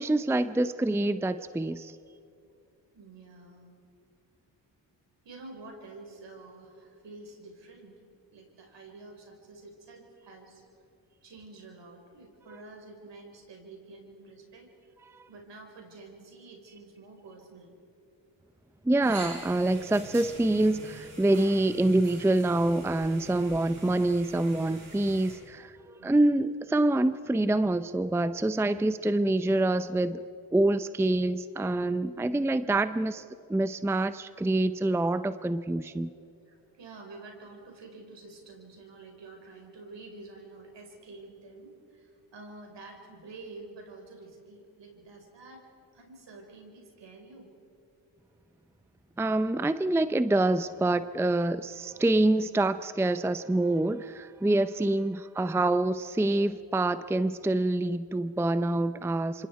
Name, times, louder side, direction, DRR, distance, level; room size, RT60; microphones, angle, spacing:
voice 1, 0.0-2.0 15.1-15.3 18.8-30.2 30.5-33.2 33.5-36.1 49.2-59.5, right 2 dB, 5° right, 13 dB, 0.6 m, -26 dB
voice 2, 2.9-3.8 5.2-8.0 8.3-10.6 11.2-14.7 15.3-17.7 26.0-26.4 32.1-32.2 36.5-47.5 54.7-55.1, right 3 dB, 65° right, 2 dB, 5.3 m, -49 dB
sound 1, 19.0-25.3, right 2 dB, 90° right, 7.6 m, -45 dB
27.0 x 25.5 x 4.7 m, 2.5 s
cardioid pair, 65°, 45 cm